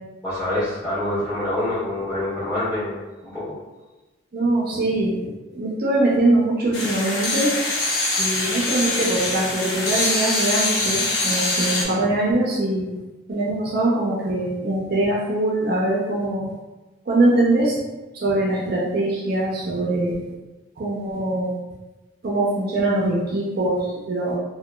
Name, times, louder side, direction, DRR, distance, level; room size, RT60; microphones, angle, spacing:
voice 1, 0.2-3.5, left 1 dB, 15° left, -13 dB, 1.5 m, -26 dB
voice 2, 4.3-5.1 5.5-7.5 8.2-12.9 13.3-16.5 17.1-17.7 18.1-20.2 20.8-21.5 22.2-24.4, right 2 dB, 50° right, -5 dB, 0.5 m, -22 dB
sound 1, 6.7-11.8, left 2 dB, 75° left, 0.7 m, -24 dB
2.9 x 2.2 x 2.2 m, 1.1 s
head